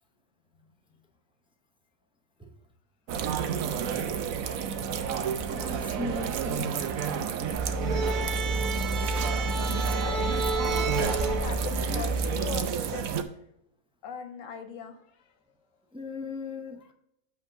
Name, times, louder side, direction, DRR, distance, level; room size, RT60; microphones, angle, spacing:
sound 1, 3.1-13.2, right 7 dB, 85° right, 1.1 m, -31 dB
voice 1, 5.5-6.7 15.9-16.9, left 3 dB, 5° right, 3 dB, 0.4 m, -37 dB
sound 2, 7.6-12.6, right 2 dB, 50° right, 0.6 m, -29 dB
voice 2, 10.0-13.1 14.0-15.3, left 6 dB, 70° left, 8 dB, 1.2 m, -41 dB
7.9 x 3.6 x 5.6 m, 0.78 s
omnidirectional pair, 1.4 m